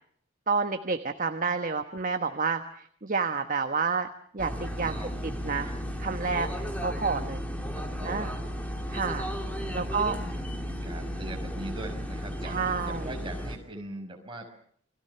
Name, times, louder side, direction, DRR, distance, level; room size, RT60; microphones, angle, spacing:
voice 1, 0.5-4.1 4.3-5.7 6.0-6.5 6.8-7.4 8.0-8.3 8.9-9.3 9.7-10.2 12.4-13.1, right 4 dB, 40° right, 7 dB, 1.3 m, -29 dB
sound 1, 4.4-13.6, equal, 5° left, 3.1 m, -34 dB
voice 2, 7.7-8.4 9.6-10.4 10.6-14.5, right 1 dB, 25° right, 2 dB, 5.7 m, -42 dB
29.0 x 22.5 x 6.8 m, 0.62 s
head